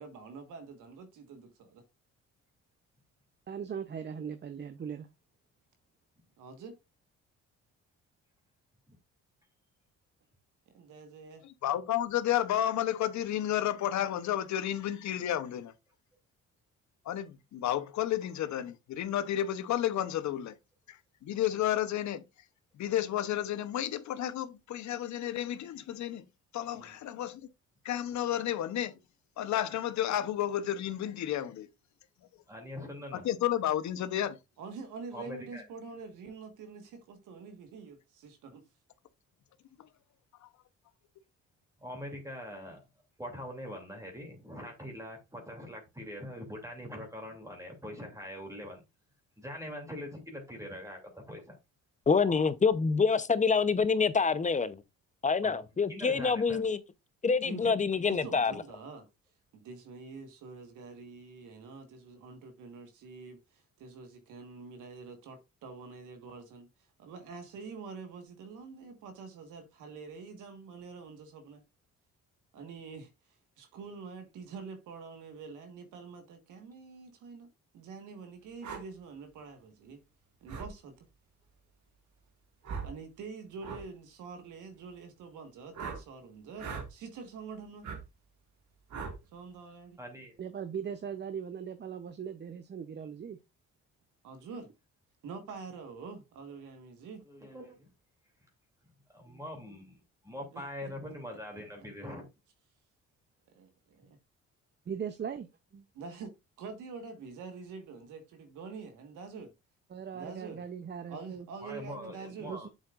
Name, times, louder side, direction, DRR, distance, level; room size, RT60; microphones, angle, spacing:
voice 1, 0.0-1.8 6.4-6.8 10.7-11.4 26.7-27.0 34.6-38.6 57.4-57.7 58.1-59.1 59.5-66.7 67.0-71.6 72.5-73.1 73.6-77.5 77.7-80.0 80.4-81.1 82.8-87.9 89.3-90.0 94.2-94.7 95.2-97.2 100.5-100.9 103.6-103.7 105.9-109.5 110.1-110.6 111.1-112.6, right 5 dB, 85° right, 1.6 m, -46 dB
voice 2, 3.5-5.1 90.4-93.4 104.9-105.5 105.7-105.8 109.9-111.5 112.4-112.7, right 7 dB, 35° right, 0.7 m, -39 dB
voice 3, 11.4-15.7 17.1-20.6 20.9-21.0 21.2-22.2 22.8-26.2 26.5-27.5 27.8-29.0 29.4-31.7 33.1-34.4 39.8-39.9 40.4-40.5, left 11 dB, 70° left, 0.8 m, -31 dB
voice 4, 32.5-33.3 35.1-35.7 41.8-42.8 43.2-48.8 49.4-51.6 55.4-55.6 55.9-56.6 90.0-90.4 97.3-97.9 99.1-102.2 111.6-112.7, left 1 dB, 10° right, 2.7 m, -43 dB
voice 5, 52.1-54.8 55.2-56.8 57.2-58.5, left 5 dB, 25° left, 0.7 m, -26 dB
sound 1, 78.6-78.8 80.5-80.7 82.6-82.9 83.6-83.8 85.7-86.0 86.6-86.9 87.8-88.0 88.9-89.2, right 5 dB, 70° right, 2.0 m, -39 dB
7.4 x 7.3 x 2.5 m
cardioid pair, 90°, 30 cm